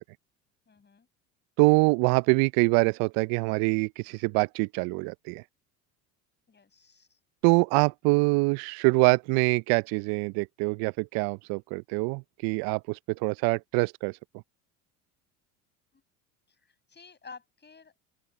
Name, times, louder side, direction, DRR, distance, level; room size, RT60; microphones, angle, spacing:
voice 1, 0.7-1.1 6.5-7.2 15.9-16.0 16.5-18.0, left 5 dB, 25° left, 6.3 m, -51 dB
voice 2, 1.6-5.4 7.4-14.1, right 28 dB, 55° right, 0.7 m, -25 dB
open air
hypercardioid pair, 75°, 43 cm